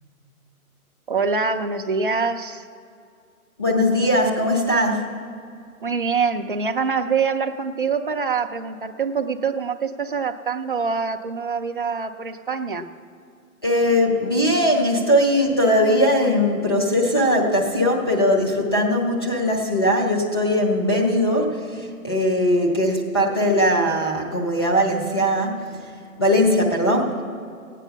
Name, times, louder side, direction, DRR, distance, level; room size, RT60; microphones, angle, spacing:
voice 1, 1.1-2.6 5.8-12.9, right 5 dB, 40° right, 5 dB, 0.5 m, -25 dB
voice 2, 3.6-5.1 13.6-25.6 26.2-27.2, equal, 15° left, 0 dB, 0.6 m, -20 dB
16.0 x 9.1 x 5.6 m, 2.4 s
hypercardioid pair, 170°, 44 cm